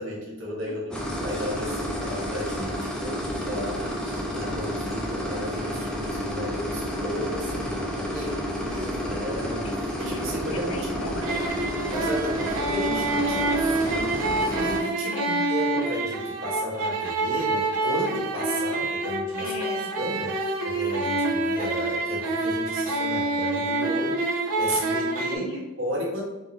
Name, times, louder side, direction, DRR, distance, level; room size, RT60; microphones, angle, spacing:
voice 1, 0.0-9.7 10.0-11.1 11.9-19.5 20.0-25.5 25.8-26.2, equal, 60° right, -3 dB, 1.1 m, -34 dB
sound 1, 0.9-14.8, equal, 5° left, 0.3 m, -30 dB
voice 2, 9.6-10.2 10.5-11.6 15.0-15.4 19.4-19.9 25.3-25.6, left 2 dB, 70° left, 4 dB, 0.5 m, -38 dB
sound 2, 11.2-25.4, right 2 dB, 85° right, 0.6 m, -27 dB
3.6 x 2.5 x 3.0 m, 1.1 s
head